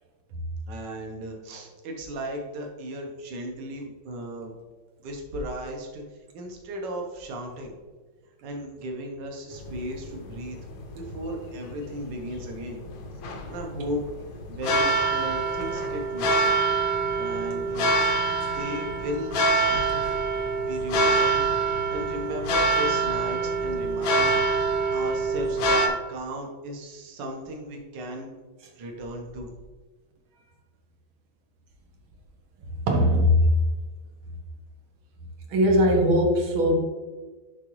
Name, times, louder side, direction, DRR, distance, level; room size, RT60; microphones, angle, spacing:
voice 1, 0.7-4.5 5.0-7.7 8.4-10.6 10.9-12.9 13.5-14.0 14.5-16.6 17.1-17.9 18.5-19.4 19.7-20.2 20.5-21.5 21.9-28.3 28.7-29.5, equal, 65° right, 1 dB, 1.7 m, -36 dB
sound 1, 9.5-25.9, right 3 dB, 80° left, 1.6 m, -25 dB
voice 2, 32.9-33.5 35.5-36.8, equal, 90° right, 2 dB, 1.8 m, -20 dB
11.0 x 3.7 x 3.1 m, 1.3 s
omnidirectional pair, 2.1 m